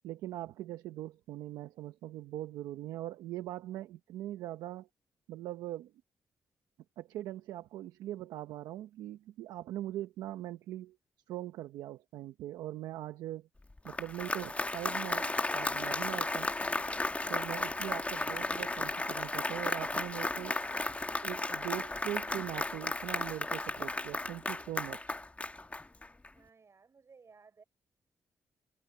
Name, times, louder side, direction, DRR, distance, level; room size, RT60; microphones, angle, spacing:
voice 1, 0.0-4.9 5.3-5.9 7.0-11.0 11.3-13.5 13.8-16.5 17.3-20.6 21.2-25.2, right 14 dB, 90° right, 0.8 m, -41 dB
Applause, 13.7-26.3, left 2 dB, 20° left, 1.3 m, -34 dB
voice 2, 26.3-27.6, right 5 dB, 45° right, 5.9 m, -59 dB
supercardioid pair, 55°, 7 cm